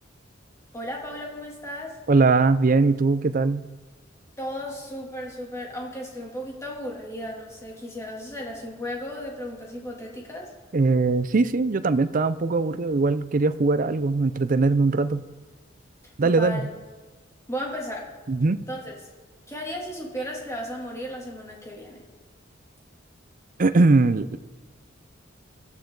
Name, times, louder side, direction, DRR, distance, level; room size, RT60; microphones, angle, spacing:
voice 1, 0.7-2.0 4.4-10.5 16.2-16.7 17.5-18.1 18.7-18.9 19.5-22.0, equal, 15° left, -2 dB, 2.8 m, -35 dB
voice 2, 2.1-3.6 10.7-15.2 16.2-16.7 18.3-18.6 23.6-24.4, right 3 dB, 45° right, 13 dB, 0.5 m, -21 dB
22.0 x 13.0 x 3.9 m, 1.3 s
head